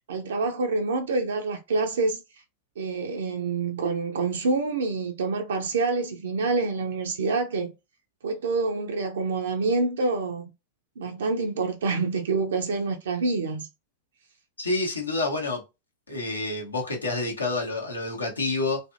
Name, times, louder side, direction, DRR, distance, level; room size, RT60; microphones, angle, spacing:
voice 1, 0.1-2.2 2.8-7.7 8.2-10.5 11.0-13.7, right 3 dB, 65° right, 0.4 m, -27 dB
voice 2, 14.6-15.6 16.1-18.8, left 2 dB, 80° left, 0.9 m, -28 dB
2.6 x 2.5 x 2.4 m
figure-of-eight pair, 90°, 0 cm